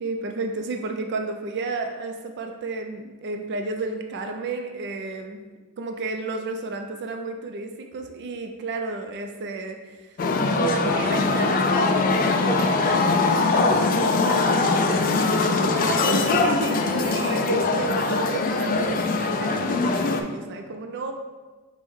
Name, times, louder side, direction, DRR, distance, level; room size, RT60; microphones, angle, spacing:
voice 1, 0.0-5.4 5.8-10.1 10.5-21.1, right 3 dB, 50° right, 4 dB, 0.4 m, -32 dB
sound 1, 10.2-20.2, left 3 dB, 40° left, 0.3 m, -22 dB
5.4 x 2.1 x 4.6 m, 1.3 s
head